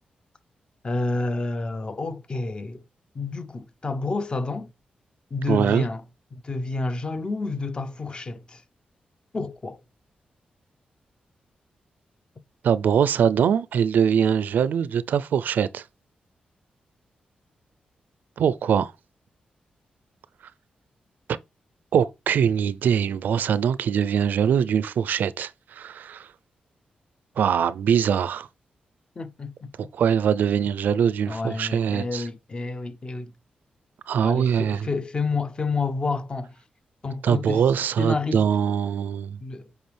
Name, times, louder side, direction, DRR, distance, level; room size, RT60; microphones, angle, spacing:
voice 1, 0.8-2.8 3.1-4.7 5.3-6.0 6.3-8.6 9.3-9.8 29.2-29.7 31.3-33.3 34.2-36.6 37.0-37.6 38.0-38.4 39.4-39.7, left 3 dB, 30° left, 0.7 m, -29 dB
voice 2, 5.5-5.9 12.6-15.8 18.4-18.9 21.9-26.3 27.4-28.5 29.9-32.2 34.1-34.9 37.2-39.4, right 8 dB, 85° right, 0.4 m, -22 dB
8.0 x 4.8 x 3.3 m
wide cardioid pair, 105°, 3 cm